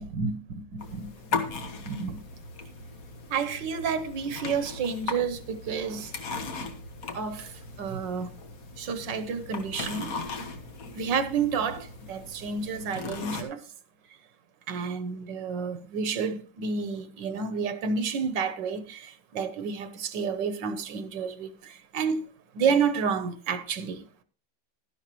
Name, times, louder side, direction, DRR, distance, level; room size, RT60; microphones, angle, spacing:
voice 1, 0.0-2.2 3.3-6.1 7.1-8.3 8.8-10.1 11.0-13.6 14.7-22.3 22.5-24.0, right 6 dB, 80° right, 1.6 m, -30 dB
sound 1, 0.8-13.4, left 3 dB, 55° left, 1.6 m, -38 dB
12.0 x 11.0 x 3.1 m
omnidirectional pair, 1.9 m